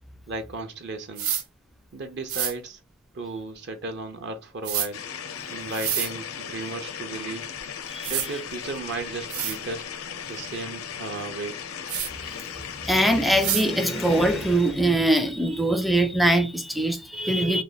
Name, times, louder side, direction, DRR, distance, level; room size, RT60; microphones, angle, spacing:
voice 1, 0.3-1.4 1.9-2.8 3.1-5.0 5.5-7.5 8.1-9.9 10.3-11.6, right 3 dB, 50° right, 0.6 m, -35 dB
sound 1, 1.2-1.4 2.3-2.5 4.6-4.9 5.7-6.1 7.6-7.7 8.0-8.3 8.9-9.0 9.3-9.6 11.9-12.1 13.4-13.7, right 10 dB, 85° right, 0.9 m, -27 dB
sound 2, 4.9-14.9, left 7 dB, 75° left, 0.6 m, -37 dB
voice 2, 12.9-17.6, right 1 dB, ahead, 0.4 m, -22 dB
3.3 x 2.8 x 3.9 m
head